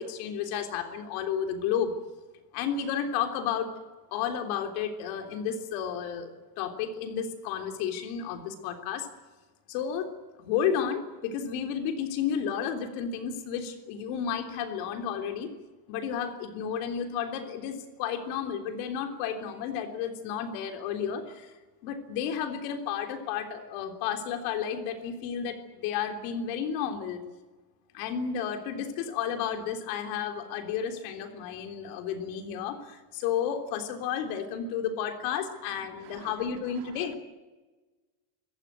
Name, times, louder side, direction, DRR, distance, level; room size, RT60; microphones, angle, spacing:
voice 1, 0.0-1.9 2.5-3.7 4.1-6.3 6.6-9.1 9.7-10.1 10.4-15.5 15.9-21.5 21.8-27.2 27.9-37.2, left 8 dB, 60° left, 3.6 m, -32 dB
voice 2, 36.0-36.3 36.8-37.2, right 13 dB, 70° right, 2.6 m, -50 dB
26.5 x 15.0 x 9.5 m
cardioid pair, 170°, 46 cm